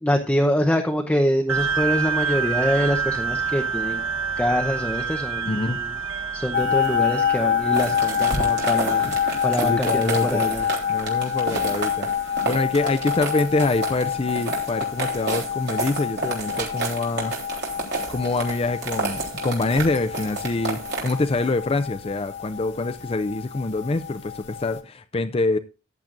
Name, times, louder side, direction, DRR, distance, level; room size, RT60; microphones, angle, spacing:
voice 1, 0.0-4.0 4.4-5.9 6.3-9.1 9.4-10.7, equal, 5° left, 0.8 m, -24 dB
sound 1, 1.5-12.4, right 5 dB, 80° right, 1.5 m, -29 dB
voice 2, 5.5-5.8 9.0-10.5 10.9-17.4 18.1-25.6, left 3 dB, 30° left, 0.4 m, -25 dB
sound 2, 6.5-24.8, left 9 dB, 60° left, 1.8 m, -27 dB
sound 3, 7.7-21.5, right 3 dB, 55° right, 3.6 m, -31 dB
14.5 x 10.5 x 2.5 m
head